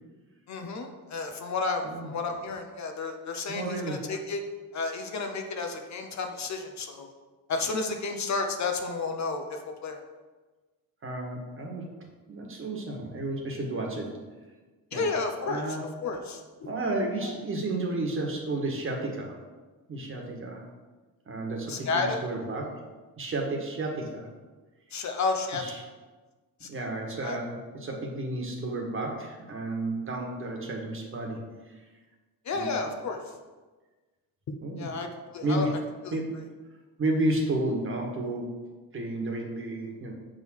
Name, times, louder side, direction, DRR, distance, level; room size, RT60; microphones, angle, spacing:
voice 1, 0.5-4.4 4.7-7.1 7.5-10.0 14.9-15.8 16.0-16.7 21.7-22.2 24.9-25.6 26.6-26.9 27.2-27.4 32.4-33.2 34.5-35.1 35.3-35.7 36.0-36.2, left 3 dB, 45° left, 5 dB, 0.8 m, -31 dB
voice 2, 3.5-4.0 11.0-11.9 12.3-14.2 14.9-15.1 15.5-15.9 16.6-19.4 19.9-20.6 21.3-22.8 23.2-24.3 25.5-25.8 26.7-31.8 32.5-32.8 34.6-34.9 35.4-35.8 36.1-36.3 37.0-38.5 38.9-40.1, right 2 dB, 35° right, 0 dB, 1.5 m, -32 dB
7.3 x 3.9 x 6.2 m, 1.3 s
cardioid pair, 135°, 38 cm